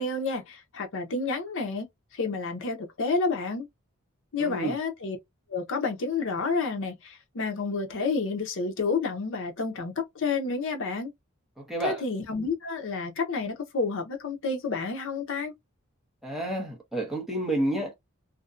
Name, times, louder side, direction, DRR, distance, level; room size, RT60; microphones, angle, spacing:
voice 1, 0.0-1.9 2.1-3.7 4.3-5.2 5.5-11.1 11.8-15.5, left 4 dB, 60° left, 0.6 m, -30 dB
voice 2, 4.4-4.7 11.6-12.0 16.2-17.9, right 1 dB, ahead, 0.7 m, -30 dB
2.5 x 2.1 x 2.4 m
head